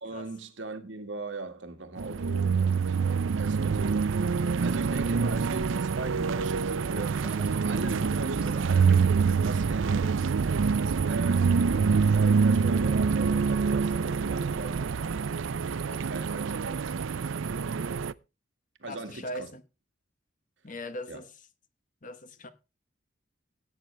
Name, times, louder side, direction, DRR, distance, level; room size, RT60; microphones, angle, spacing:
voice 1, 0.0-4.1 4.5-10.2 11.0-14.9 15.8-16.9 18.8-19.5 21.1-21.2, right 2 dB, 75° right, 1.9 m, -39 dB
sound 1, 2.0-18.1, right 5 dB, 90° right, 0.5 m, -26 dB
sound 2, 7.1-9.3 9.6-9.8, right 2 dB, 5° right, 2.4 m, -52 dB
voice 2, 18.9-19.6 20.6-21.3 22.0-22.5, left 1 dB, 45° left, 1.1 m, -39 dB
16.5 x 8.7 x 3.3 m
head